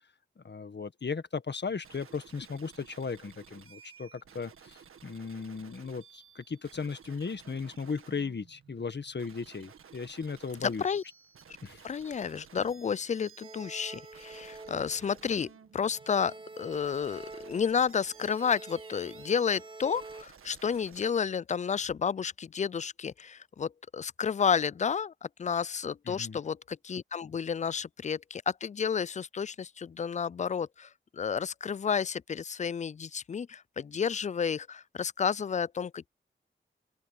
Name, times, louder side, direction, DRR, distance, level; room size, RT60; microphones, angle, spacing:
voice 1, 0.4-10.8 11.6-11.8 26.1-26.4, left 5 dB, 55° left, 1.7 m, -36 dB
sound 1, 1.8-21.1, right 7 dB, 90° right, 1.6 m, -55 dB
voice 2, 10.6-11.0 11.8-36.1, left 6 dB, 35° left, 0.4 m, -31 dB
sound 2, 13.4-15.6 15.9-20.2, right 3 dB, 25° right, 1.1 m, -47 dB
open air
cardioid pair, 45°, 21 cm